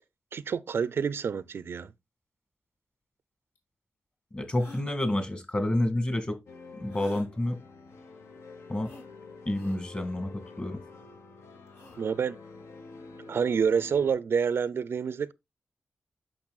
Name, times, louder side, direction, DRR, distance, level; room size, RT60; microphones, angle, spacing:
voice 1, 0.3-1.9 12.0-12.4 13.3-15.3, right 6 dB, 65° right, 0.4 m, -28 dB
sound 1, 3.6-3.7 4.6-4.9 6.9-7.3 8.8-9.1 9.5-9.8 11.7-12.0, left 1 dB, 65° left, 2.5 m, -47 dB
voice 2, 4.3-6.4 6.8-7.6 8.7-8.9 9.5-10.8, left 1 dB, 30° left, 1.8 m, -29 dB
sound 2, 6.5-14.1, left 3 dB, 90° left, 1.1 m, -48 dB
8.6 x 6.0 x 2.3 m
wide cardioid pair, 115°, 4 cm